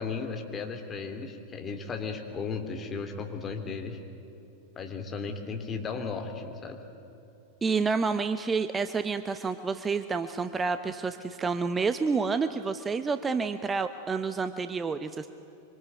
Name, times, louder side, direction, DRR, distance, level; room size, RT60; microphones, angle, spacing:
voice 1, 0.0-4.0 4.8-6.8, left 5 dB, 20° left, 4 dB, 3.2 m, -35 dB
voice 2, 7.6-15.3, right 4 dB, 15° right, 11 dB, 0.9 m, -29 dB
25.5 x 25.0 x 9.4 m, 2.9 s
figure-of-eight pair, 90°, 0 cm